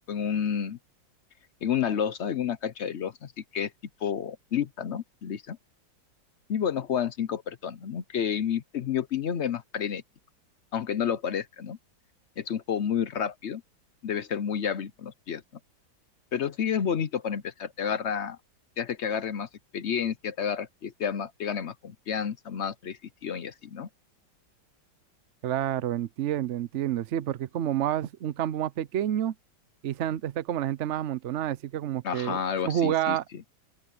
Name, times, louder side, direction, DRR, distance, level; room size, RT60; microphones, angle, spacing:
voice 1, 0.1-0.8 1.6-3.7 4.0-5.6 6.5-10.0 10.7-11.8 12.4-13.6 14.0-15.4 16.3-18.4 18.8-23.9 32.0-33.2, left 8 dB, 55° left, 0.7 m, -30 dB
voice 2, 25.4-29.3 29.8-32.4 32.6-33.2, right 11 dB, 65° right, 0.7 m, -29 dB
open air
omnidirectional pair, 1.9 m